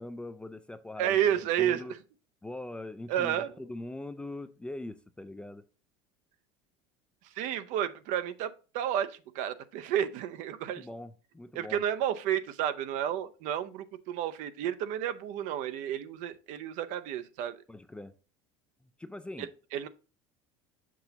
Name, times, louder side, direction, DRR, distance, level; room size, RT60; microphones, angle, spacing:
voice 1, 0.0-1.2 1.6-2.0 2.4-5.6 10.8-11.8 17.7-18.1 19.0-19.5, left 2 dB, 5° left, 0.3 m, -42 dB
voice 2, 1.0-1.8 3.1-3.5 7.4-10.8 11.5-17.6 19.4-19.9, right 10 dB, 65° right, 0.6 m, -31 dB
6.7 x 6.1 x 2.8 m
supercardioid pair, 125°, 14 cm